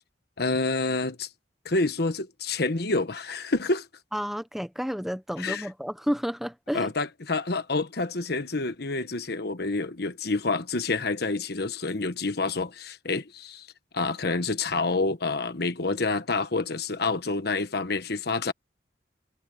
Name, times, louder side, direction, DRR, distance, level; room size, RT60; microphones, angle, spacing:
voice 1, 0.4-1.3 1.6-3.9 5.4-5.7 6.7-13.7 13.9-18.5, left 3 dB, 60° left, 1.3 m, -28 dB
voice 2, 4.1-6.9, equal, ahead, 1.2 m, -31 dB
head